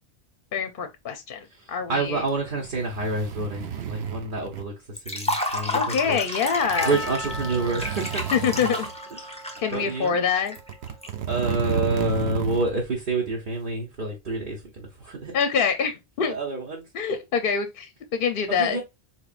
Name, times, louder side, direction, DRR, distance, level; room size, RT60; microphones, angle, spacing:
voice 1, 0.5-2.2 5.7-7.0 8.3-8.9 9.6-10.6 15.3-16.3 16.9-18.8, left 6 dB, 60° left, 0.7 m, -25 dB
voice 2, 1.5-6.4 6.8-8.2 9.2-9.4 9.7-10.2 11.3-15.4 16.3-16.9 18.5-18.8, right 2 dB, 55° right, 1.0 m, -28 dB
sound 1, 2.3-4.7 6.0-6.1 6.4-8.9 9.6-9.7 10.4-12.7 13.0-13.1, right 9 dB, 80° right, 1.0 m, -33 dB
Liquid, 5.0-11.1, left 1 dB, 5° left, 0.6 m, -31 dB
Percussion, 6.7-11.0, left 1 dB, 25° right, 0.8 m, -38 dB
4.4 x 3.0 x 2.4 m
omnidirectional pair, 1.1 m